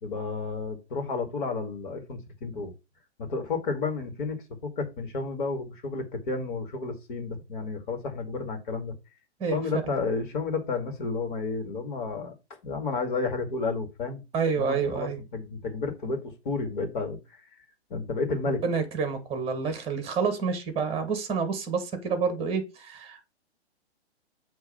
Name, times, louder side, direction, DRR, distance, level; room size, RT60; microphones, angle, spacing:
voice 1, 0.0-2.7 3.2-8.9 9.5-12.3 12.6-14.2 14.5-17.2 17.9-18.6, left 4 dB, 50° left, 2.1 m, -31 dB
voice 2, 14.3-15.2 18.6-23.3, right 5 dB, 15° right, 1.4 m, -28 dB
7.2 x 3.1 x 5.3 m
figure-of-eight pair, 120°, 33 cm